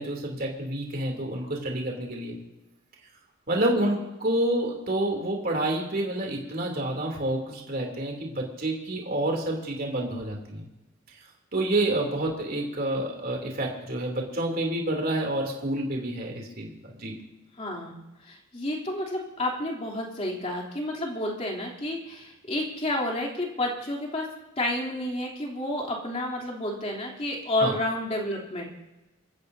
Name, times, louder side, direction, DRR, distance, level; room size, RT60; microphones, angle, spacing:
voice 1, 0.0-2.4 3.5-10.7 11.5-17.2 27.6-27.8, right 1 dB, 45° right, 0 dB, 3.0 m, -28 dB
voice 2, 17.6-18.0 18.2-24.3 24.6-28.7, left 1 dB, 30° left, -1 dB, 3.2 m, -30 dB
25.5 x 14.5 x 2.8 m, 0.99 s
head